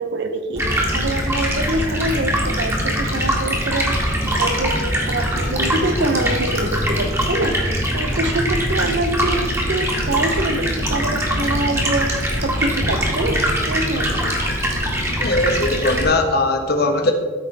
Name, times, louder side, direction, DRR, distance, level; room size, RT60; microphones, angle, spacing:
voice 1, 0.0-7.6 7.9-14.3, right 2 dB, 65° right, 8 dB, 0.9 m, -25 dB
Stream, 0.6-16.0, equal, 15° right, 2.0 m, -22 dB
voice 2, 15.2-17.1, left 2 dB, 60° left, 5 dB, 1.2 m, -19 dB
13.5 x 5.7 x 4.1 m, 1.5 s
head